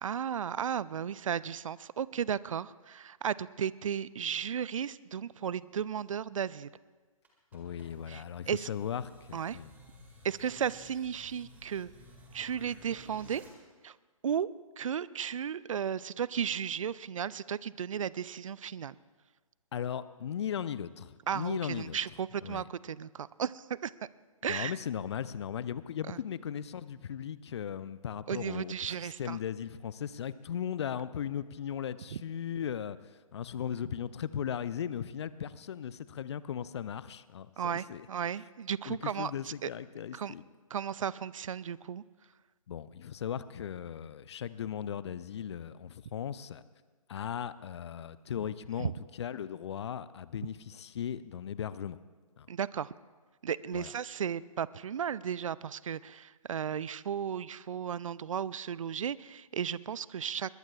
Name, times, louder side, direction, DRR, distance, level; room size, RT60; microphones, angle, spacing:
voice 1, 0.0-6.7 8.1-8.7 9.3-9.6 10.2-11.9 12.3-13.4 13.8-14.0 14.2-14.5 14.8-18.9 21.3-23.9 24.4-24.8 26.1-26.2 28.3-29.4 32.1-32.2 37.6-39.7 40.1-40.3 40.7-42.0 48.8-48.9 52.5-52.9 53.4-60.6, right 8 dB, 65° right, 20 dB, 0.4 m, -34 dB
sound 1, 7.2-13.5, equal, 10° right, 2.1 m, -55 dB
voice 2, 7.5-9.0 9.3-9.7 19.7-22.0 22.4-22.7 24.5-38.1 38.9-40.4 42.7-46.6 47.1-48.9 49.2-52.0 52.4-52.5 53.7-53.9, left 9 dB, 50° left, 16 dB, 0.6 m, -37 dB
21.5 x 19.5 x 2.4 m, 1.4 s
figure-of-eight pair, 130°, 18 cm